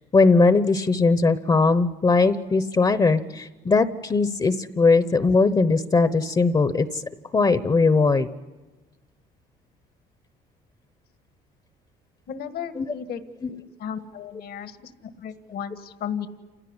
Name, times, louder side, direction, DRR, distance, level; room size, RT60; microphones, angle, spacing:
voice 1, 0.1-7.0 7.3-8.3 12.8-12.9, left 3 dB, 25° left, 12 dB, 1.0 m, -19 dB
voice 2, 12.3-13.2 13.5-16.3, left 8 dB, 65° left, 9 dB, 1.7 m, -35 dB
28.5 x 17.0 x 9.8 m, 1.2 s
cardioid pair, 110°, 17 cm